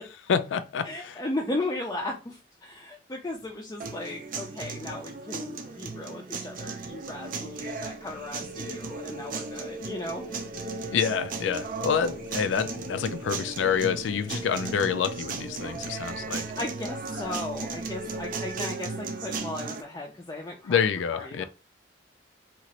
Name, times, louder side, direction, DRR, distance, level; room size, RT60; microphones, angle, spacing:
voice 1, 0.3-1.2 10.9-16.5 20.6-21.4, left 7 dB, 85° left, 0.3 m, -27 dB
voice 2, 0.8-10.3 16.6-20.8 21.1-21.4, left 2 dB, 20° left, 0.4 m, -36 dB
sound 1, 3.8-19.8, right 4 dB, 50° right, 0.4 m, -36 dB
sound 2, 6.8-18.5, equal, 25° right, 0.8 m, -43 dB
2.8 x 2.4 x 2.9 m
head